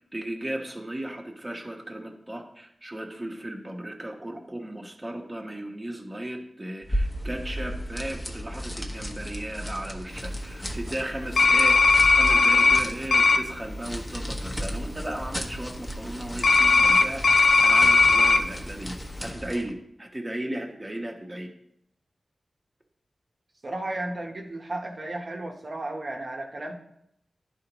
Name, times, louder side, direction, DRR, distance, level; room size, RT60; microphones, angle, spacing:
voice 1, 0.0-11.8 12.0-17.2 17.6-18.9 19.2-21.5, right 1 dB, 15° right, 0 dB, 1.0 m, -35 dB
sound 1, 6.8-19.7, equal, 10° left, 1.0 m, -34 dB
sound 2, 11.4-12.8 13.1-13.4 16.4-18.4, left 4 dB, 65° left, 0.5 m, -18 dB
voice 2, 23.6-26.7, right 2 dB, 50° right, 0 dB, 0.9 m, -34 dB
12.0 x 4.2 x 3.0 m, 0.75 s
wide cardioid pair, 105°, 0 cm